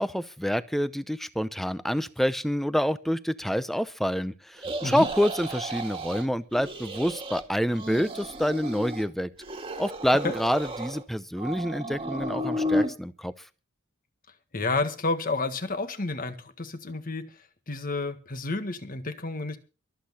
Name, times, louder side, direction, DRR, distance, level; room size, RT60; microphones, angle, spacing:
voice 1, 0.0-9.3 9.8-13.3, equal, ahead, 14 dB, 0.7 m, -27 dB
sound 1, 4.6-6.3 6.5-7.4 7.7-9.1 9.4-11.0 11.4-12.9, equal, 25° right, 1.9 m, -33 dB
voice 2, 14.5-17.2 17.7-19.6, left 3 dB, 40° left, 9 dB, 1.7 m, -30 dB
23.5 x 8.5 x 4.2 m, 0.33 s
head